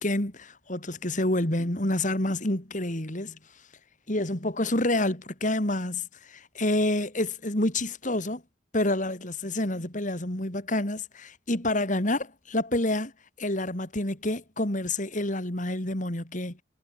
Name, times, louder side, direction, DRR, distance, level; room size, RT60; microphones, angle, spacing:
voice 1, 0.0-3.4 4.1-8.4 8.7-13.1 13.4-16.6, left 1 dB, 45° left, 3.5 m, -28 dB
head